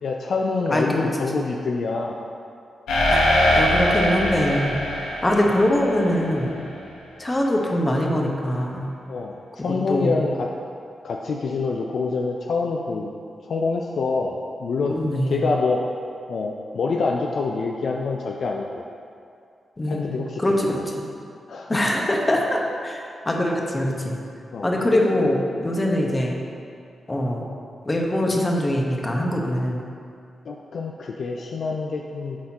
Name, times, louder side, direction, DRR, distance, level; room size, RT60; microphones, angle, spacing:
voice 1, 0.0-2.2 9.1-10.5 11.0-13.1 13.4-15.0 15.3-15.9 16.3-18.9 19.8-20.8 21.5-21.8 24.5-24.7 30.5-32.4, left 4 dB, 70° left, 0 dB, 0.4 m, -26 dB
voice 2, 0.7-1.3 3.1-3.2 3.5-4.8 5.2-6.6 7.2-8.9 9.6-10.2 14.9-15.4 19.8-20.7 21.0-21.1 21.7-24.1 24.6-25.4 25.6-26.3 27.1-27.5 27.8-29.8, left 1 dB, 30° left, 0 dB, 1.2 m, -23 dB
sound 1, 2.9-6.5, left 1 dB, 90° left, 1.0 m, -22 dB
11.5 x 4.2 x 2.9 m, 2.4 s
supercardioid pair, 40°, 0 cm